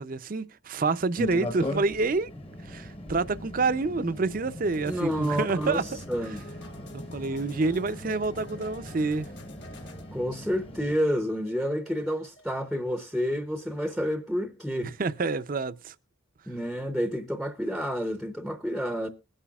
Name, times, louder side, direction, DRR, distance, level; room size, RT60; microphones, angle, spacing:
voice 1, 0.0-2.3 2.6-6.3 6.9-9.3 14.8-15.9, right 3 dB, 45° right, 0.5 m, -28 dB
sound 1, 1.2-11.0, left 1 dB, 30° left, 1.0 m, -40 dB
sound 2, 4.7-13.2, left 1 dB, 60° left, 1.6 m, -49 dB
voice 2, 4.8-5.8 6.1-6.4 10.1-14.9 16.5-19.1, equal, ahead, 0.6 m, -29 dB
21.5 x 9.9 x 2.3 m
head